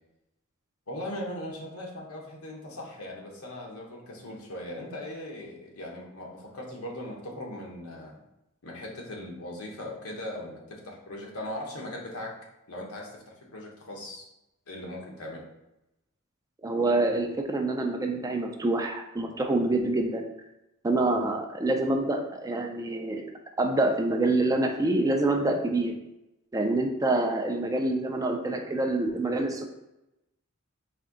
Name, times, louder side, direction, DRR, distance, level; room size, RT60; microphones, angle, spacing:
voice 1, 0.9-8.2 8.6-12.4 12.7-14.3 14.7-15.5, left 1 dB, 90° left, -1 dB, 1.0 m, -39 dB
voice 2, 16.6-20.2 20.8-23.2 23.6-25.9 26.5-29.6, right 2 dB, 15° right, 4 dB, 0.4 m, -26 dB
4.3 x 2.6 x 3.7 m, 0.92 s
head